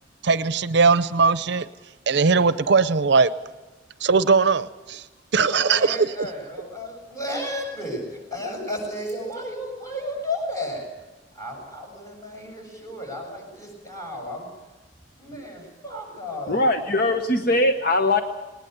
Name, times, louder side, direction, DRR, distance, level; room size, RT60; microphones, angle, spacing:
voice 1, 0.2-1.7 2.1-3.3 4.0-5.0 5.3-6.1, right 4 dB, 65° right, 14 dB, 0.6 m, -19 dB
voice 2, 5.5-8.0 8.3-10.9 11.4-14.5 15.2-16.6, left 1 dB, 20° left, 1 dB, 7.3 m, -33 dB
voice 3, 16.5-18.2, left 2 dB, 55° left, 6 dB, 1.0 m, -21 dB
20.0 x 18.5 x 8.0 m, 1.2 s
head